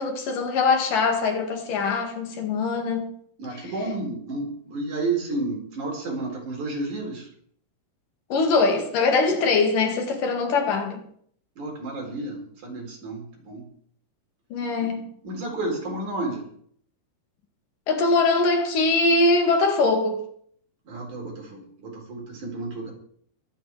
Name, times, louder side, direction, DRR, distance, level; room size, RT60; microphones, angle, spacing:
voice 1, 0.0-3.1 8.3-11.0 14.5-15.1 17.9-20.3, left 3 dB, 75° left, 3.6 m, -22 dB
voice 2, 3.4-7.3 11.6-13.7 14.8-14.9 15.2-16.5 20.9-22.9, right 2 dB, 60° right, 5.5 m, -31 dB
22.5 x 8.7 x 4.8 m
omnidirectional pair, 3.9 m